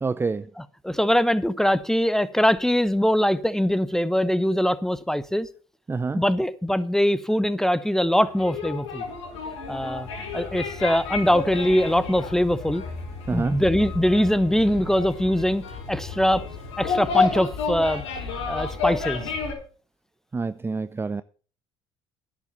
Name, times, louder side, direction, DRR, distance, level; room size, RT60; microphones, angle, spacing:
voice 1, 0.0-0.5 5.9-6.2 13.3-13.6 20.3-21.2, right 4 dB, 15° right, 0.5 m, -27 dB
voice 2, 0.6-5.5 6.1-9.0 9.7-10.1 10.3-12.8 13.3-15.6 15.9-16.4 16.8-18.0 18.5-19.3, equal, 5° left, 0.9 m, -22 dB
sound 1, 8.1-19.5, left 5 dB, 85° left, 4.0 m, -30 dB
10.5 x 7.6 x 6.9 m
hypercardioid pair, 70°, 14 cm